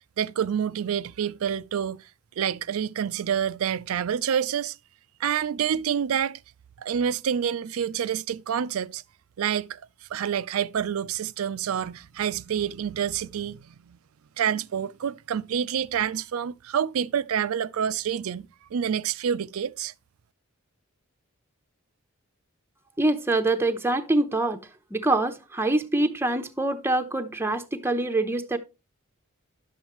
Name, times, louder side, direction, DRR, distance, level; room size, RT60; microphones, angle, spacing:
voice 1, 0.2-2.0 2.4-4.8 5.2-6.4 6.8-9.0 9.4-9.8 10.1-14.0 14.4-19.9, right 8 dB, 75° right, 0.4 m, -28 dB
voice 2, 23.0-24.6 24.9-28.6, right 2 dB, 10° right, 0.8 m, -25 dB
10.5 x 7.1 x 3.0 m
head